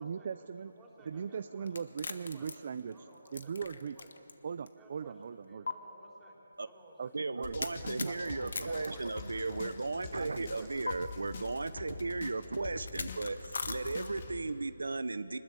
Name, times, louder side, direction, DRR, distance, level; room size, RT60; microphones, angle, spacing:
voice 1, 0.0-0.7 1.0-3.0 3.3-4.0 4.4-5.7 7.0-8.1 8.4-8.5 10.2-10.9, right 6 dB, 45° right, 12 dB, 0.5 m, -40 dB
voice 2, 0.6-1.7 2.1-2.5 2.8-4.1 4.8-6.3 6.6-7.1 7.7-8.2 8.6-9.0 10.5-10.7 11.7-11.8, right 2 dB, 10° right, -4 dB, 4.0 m, -56 dB
sound 1, 1.7-4.3 4.7-4.8 5.7-5.8 7.6-9.7 10.9-11.0 12.8-14.3, left 4 dB, 70° left, 1.6 m, -40 dB
voice 3, 7.1-15.4, right 3 dB, 85° right, 12 dB, 0.9 m, -36 dB
sound 2, 7.4-14.4, left 4 dB, 40° left, 2.0 m, -45 dB
Gurgling / Sink (filling or washing) / Bathtub (filling or washing), 7.4-13.4, left 4 dB, 15° left, 2.0 m, -60 dB
25.0 x 20.5 x 8.3 m, 2.8 s
hypercardioid pair, 165°, 0 cm